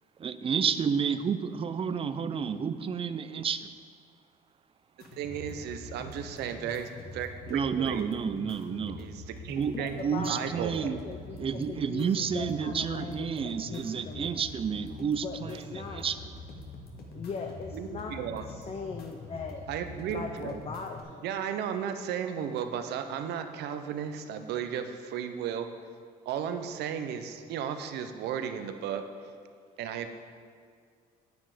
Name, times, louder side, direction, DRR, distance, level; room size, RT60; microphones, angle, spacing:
voice 1, 0.2-3.8 7.5-9.1 9.6-11.0 11.4-16.4, right 6 dB, 35° right, 13 dB, 0.5 m, -31 dB
sound 1, 5.0-21.0, left 3 dB, 65° left, 1.7 m, -45 dB
voice 2, 5.1-8.1 9.0-10.0 10.3-10.8 17.7-18.4 19.7-20.6 21.2-25.7 26.2-29.0 29.8-30.1, right 8 dB, 80° right, 8 dB, 0.8 m, -34 dB
voice 3, 9.7-10.5 10.8-14.4 15.2-16.0 17.1-19.6 20.1-21.2, left 4 dB, 35° left, 3 dB, 0.8 m, -40 dB
9.3 x 9.0 x 5.0 m, 2.1 s
cardioid pair, 110°, 17 cm